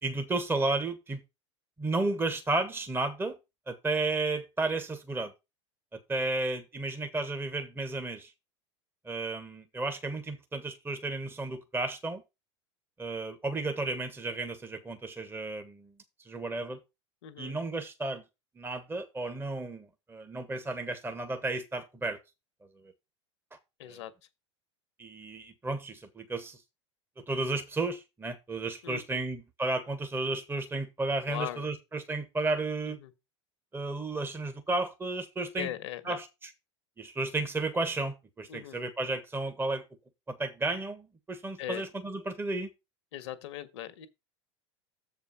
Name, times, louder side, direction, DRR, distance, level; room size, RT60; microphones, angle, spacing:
voice 1, 0.0-1.2 1.8-3.4 3.7-5.3 6.1-8.3 9.0-12.2 13.0-15.9 16.2-16.8 17.4-18.2 18.6-22.2 23.9-24.0 25.0-26.6 27.3-33.0 33.7-35.7 36.0-36.5 37.0-39.8 40.3-42.7, right 2 dB, 15° right, 1.3 m, -33 dB
voice 2, 17.2-17.6 23.8-24.1 28.8-29.3 31.3-31.7 32.8-33.1 35.6-36.2 38.5-38.8 41.6-41.9 43.1-44.1, left 13 dB, 70° left, 1.2 m, -39 dB
7.3 x 4.6 x 5.8 m
hypercardioid pair, 85°, 15 cm